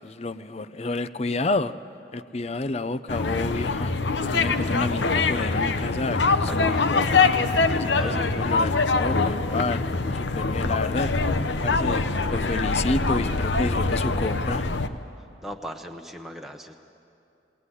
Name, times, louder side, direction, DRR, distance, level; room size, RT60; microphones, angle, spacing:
voice 1, 0.0-1.7 2.1-3.9 4.3-7.3 7.7-11.1 11.6-14.7, left 3 dB, 35° left, 14 dB, 0.5 m, -30 dB
sound 1, 3.1-14.9, left 3 dB, 85° left, 0.9 m, -24 dB
voice 2, 6.4-7.1 7.9-8.4 15.4-16.8, equal, ahead, 2 dB, 0.9 m, -38 dB
20.5 x 19.0 x 9.8 m, 2.5 s
head